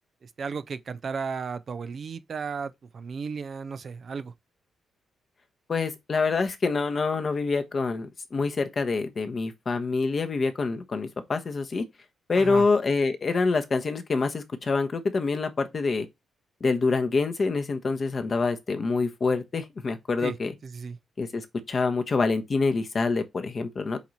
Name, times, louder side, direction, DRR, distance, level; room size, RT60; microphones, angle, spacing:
voice 1, 0.2-4.3 12.3-12.6 20.2-20.4 20.6-21.0, right 5 dB, 55° right, 0.7 m, -34 dB
voice 2, 5.7-11.8 12.3-16.1 16.6-20.5 21.2-24.0, left 4 dB, 50° left, 1.1 m, -26 dB
8.3 x 2.9 x 4.1 m
hypercardioid pair, 45°, 0 cm